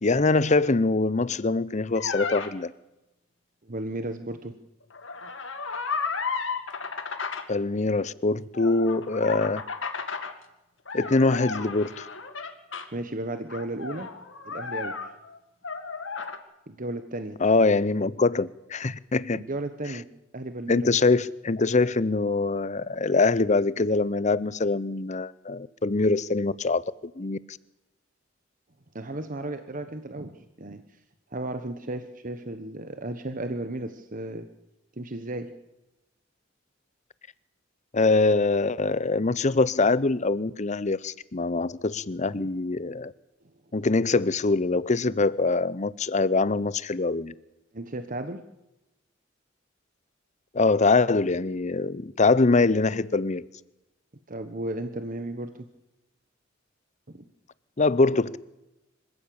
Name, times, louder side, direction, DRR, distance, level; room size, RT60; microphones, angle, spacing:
voice 1, 0.0-2.7 7.5-9.6 10.9-12.1 17.4-19.4 20.7-27.6 37.9-43.1 43.7-47.3 50.5-53.5 57.8-58.4, left 3 dB, 35° left, 0.7 m, -23 dB
sound 1, 1.9-2.5 4.9-7.5 8.5-10.3 10.9-12.9 13.5-15.4 15.6-16.4, left 5 dB, 70° left, 2.2 m, -33 dB
voice 2, 3.6-4.6 12.9-14.1 14.4-15.1 16.7-17.4 19.3-20.0 20.3-20.9 28.9-30.8 31.3-34.5 35.0-35.6 47.7-48.5 54.3-55.7 57.1-57.2, right 2 dB, 45° right, 1.2 m, -34 dB
26.0 x 15.5 x 8.8 m
head